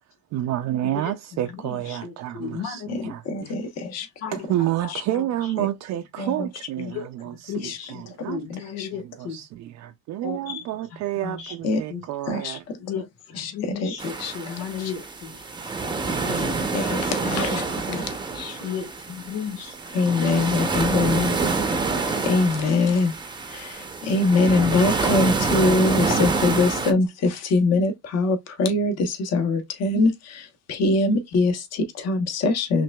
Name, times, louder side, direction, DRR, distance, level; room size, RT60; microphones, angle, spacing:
voice 1, 0.3-2.8 3.1-3.2 4.3-8.4 9.2-12.6, right 13 dB, 50° right, 0.4 m, -29 dB
voice 2, 0.8-3.5 4.2-5.5 6.8-9.4 10.2-10.5 10.9-11.6 11.9-12.1 12.8-15.5 16.0-17.5 17.9-19.8 20.1-20.2, left 7 dB, 90° left, 1.4 m, -36 dB
voice 3, 3.3-4.1 4.9-5.0 5.6-5.7 6.2-6.5 7.6-7.8 8.2-8.3 8.8-8.9 10.5-10.6 11.6-11.8 12.3-12.8 13.4-13.5 13.8-13.9 14.2-14.5 16.7-17.6 17.9-18.6 19.9-21.3 21.7-21.9 22.2-23.1 23.5-32.8, left 3 dB, 45° left, 1.1 m, -23 dB
sound 1, 14.0-26.9, right 4 dB, 15° right, 0.6 m, -27 dB
5.8 x 2.5 x 2.3 m
cardioid pair, 135°, 36 cm